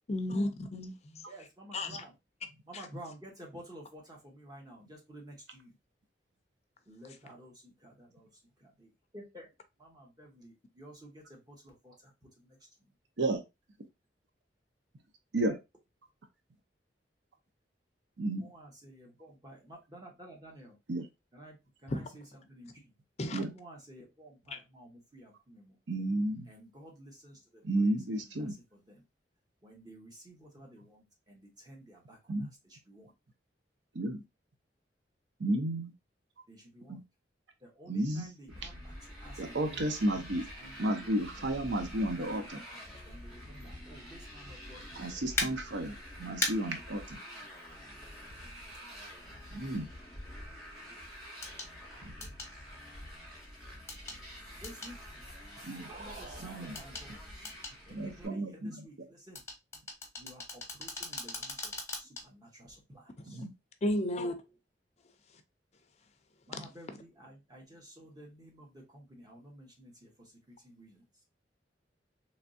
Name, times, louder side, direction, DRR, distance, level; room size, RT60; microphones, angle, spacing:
voice 1, 0.1-1.3 1.7-2.0 21.9-22.1 23.2-23.4 24.5-24.6 63.8-64.3, left 1 dB, 40° left, 0.5 m, -33 dB
voice 2, 1.3-2.1 2.7-5.8 6.8-9.5 9.8-12.9 18.3-20.8 21.3-22.9 23.3-25.8 26.5-29.0 29.6-33.1 36.5-37.0 37.6-45.4 47.4-47.5 48.7-49.0 52.2-52.7 54.5-55.0 55.9-57.5 57.8-59.4 60.2-63.5 64.4-64.6 66.5-71.0, right 1 dB, 25° right, 1.2 m, -53 dB
voice 3, 18.2-18.5 20.9-21.1 23.3-23.5 25.9-26.5 27.6-28.5 32.3-32.5 33.9-34.2 35.4-35.9 36.9-37.0 37.9-38.3 38.6-38.7 39.4-40.4 40.8-42.6 45.0-47.2 49.5-49.9 52.0-52.1 55.6-55.9 56.4-56.8 57.9-58.8 63.3-63.5, right 1 dB, 85° right, 0.7 m, -32 dB
Motorcycle, 38.5-58.3, equal, ahead, 2.1 m, -47 dB
sound 1, 45.4-45.5 46.4-46.5 48.5-48.6 51.4-51.7 52.2-52.5 53.9-54.2 54.6-54.9 56.7-57.1 57.4-57.8 59.3-62.2 62.7-62.8, left 2 dB, 15° left, 0.9 m, -37 dB
sound 2, 55.2-57.8, right 3 dB, 45° right, 0.5 m, -52 dB
3.4 x 3.1 x 2.6 m
head